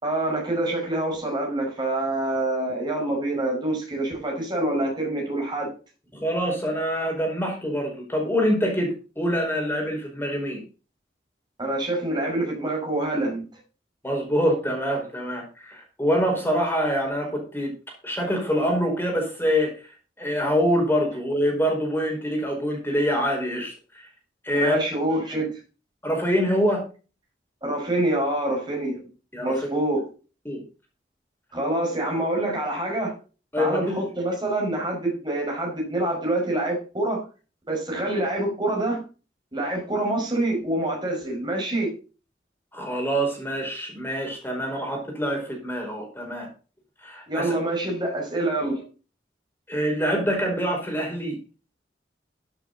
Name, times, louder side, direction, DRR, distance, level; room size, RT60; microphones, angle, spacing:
voice 1, 0.0-5.7 11.6-13.5 24.5-25.6 27.6-29.0 29.4-30.0 31.5-33.2 33.6-37.2 37.7-39.0 39.5-41.9 47.3-48.8, right 1 dB, 25° right, 5.4 m, -26 dB
voice 2, 6.1-10.6 14.0-17.7 18.0-19.9 20.2-24.1 24.4-24.8 26.0-26.8 29.3-29.7 30.4-30.6 33.5-34.0 42.7-46.5 47.0-47.5 49.7-51.4, equal, 15° left, 4.9 m, -25 dB
14.5 x 8.2 x 4.1 m
head